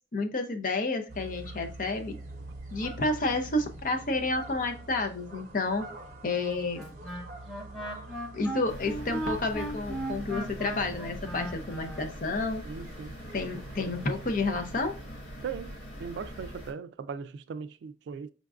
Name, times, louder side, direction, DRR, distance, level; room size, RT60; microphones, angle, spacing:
voice 1, 0.1-2.2 2.7-5.9 6.2-6.8 8.3-12.6 13.3-14.9, left 2 dB, 45° left, 0.6 m, -30 dB
sound 1, 1.1-14.3, right 2 dB, 45° right, 0.7 m, -46 dB
Wind instrument woodwind instrument, 6.7-12.1, right 1 dB, 5° left, 0.7 m, -37 dB
sound 2, 8.7-16.7, right 1 dB, 80° left, 1.7 m, -42 dB
voice 2, 12.7-13.3 15.4-18.3, right 6 dB, 80° right, 0.3 m, -39 dB
5.1 x 2.4 x 2.3 m
head